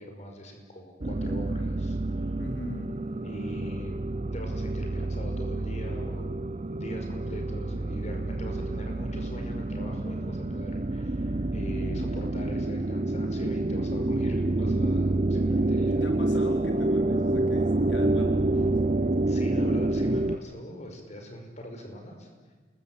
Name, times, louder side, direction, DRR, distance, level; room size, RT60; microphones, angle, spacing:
voice 1, 0.0-2.2 3.2-4.0 4.3-6.3 6.7-16.0 19.3-22.3, equal, 40° left, 4 dB, 5.3 m, -42 dB
sound 1, 1.0-20.4, right 2 dB, 35° right, 0.8 m, -28 dB
voice 2, 2.4-3.0 15.9-18.8, left 1 dB, 75° left, 3 dB, 3.5 m, -40 dB
29.0 x 21.0 x 9.0 m, 1.4 s
head